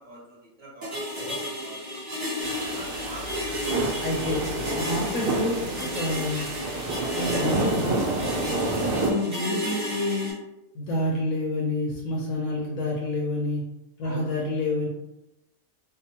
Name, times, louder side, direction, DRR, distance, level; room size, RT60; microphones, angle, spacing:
voice 1, 0.0-2.0 2.6-4.0 8.5-8.7 14.0-14.3, right 2 dB, 35° right, -8 dB, 1.0 m, -45 dB
sound 1, 0.8-10.3, equal, 15° right, 0.7 m, -32 dB
sound 2, 2.4-9.1, right 2 dB, 75° right, 1.0 m, -29 dB
voice 2, 4.0-6.5 7.1-8.1 9.0-10.3 10.7-13.6 14.0-14.9, left 1 dB, 70° left, -3 dB, 0.9 m, -28 dB
2.7 x 2.0 x 2.8 m, 0.88 s
omnidirectional pair, 1.6 m